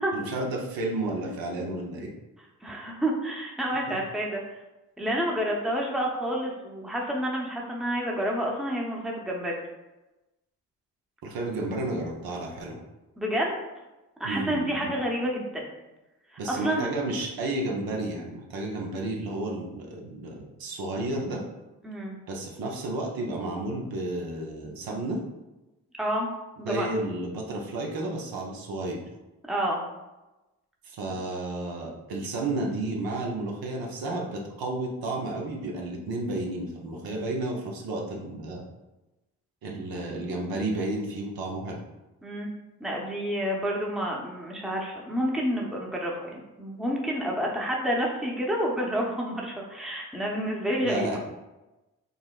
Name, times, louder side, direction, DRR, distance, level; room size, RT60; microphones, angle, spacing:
voice 1, 0.1-2.1 3.9-4.0 11.2-12.8 14.2-14.9 16.4-21.4 22.3-25.2 26.6-29.0 30.8-38.6 39.6-41.8 50.8-51.2, right 2 dB, 65° right, 0 dB, 0.8 m, -32 dB
voice 2, 2.6-4.4 5.0-9.6 13.2-13.6 14.2-15.7 16.5-16.9 21.8-22.1 26.0-26.3 26.6-26.9 29.5-29.8 42.2-42.5 42.8-51.1, equal, ahead, -2 dB, 0.8 m, -29 dB
5.2 x 2.0 x 2.3 m, 1.0 s
supercardioid pair, 50°, 38 cm